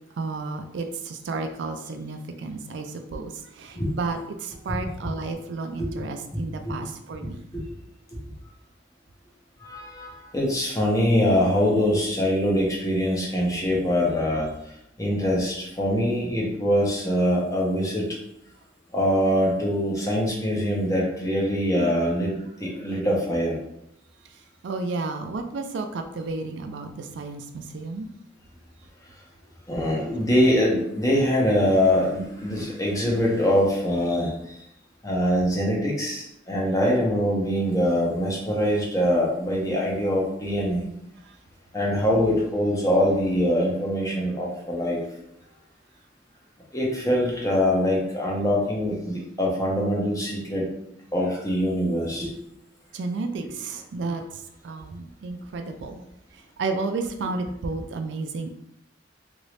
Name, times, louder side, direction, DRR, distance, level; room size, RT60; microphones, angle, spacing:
voice 1, 0.1-7.5 24.2-28.1 32.5-32.6 41.2-41.4 52.9-56.1 56.3-58.5, right 3 dB, 70° right, 6 dB, 0.4 m, -32 dB
voice 2, 9.6-14.5 15.0-18.1 18.9-23.6 29.7-34.6 35.0-40.8 41.7-45.0 46.7-50.7 51.1-52.3, equal, 20° left, -3 dB, 0.8 m, -23 dB
2.9 x 2.6 x 3.2 m, 0.78 s
head